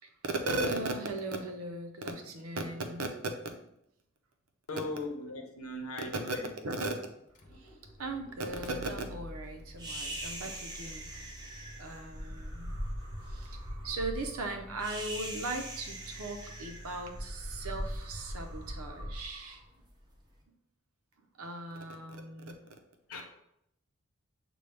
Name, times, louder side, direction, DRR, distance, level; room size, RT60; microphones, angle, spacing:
voice 1, 0.2-3.1 6.3-6.4 6.6-6.9 7.6-7.7 8.0-11.1 11.8-12.7 13.3-19.6 21.4-22.6, right 2 dB, 80° right, 0.7 m, -37 dB
voice 2, 4.7-6.5 23.1-23.2, left 2 dB, 80° left, 0.9 m, -39 dB
Motor vehicle (road), 7.3-18.4, equal, 35° left, 0.6 m, -49 dB
sound 1, 9.8-20.2, equal, 20° right, 0.7 m, -41 dB
6.8 x 2.3 x 3.3 m
head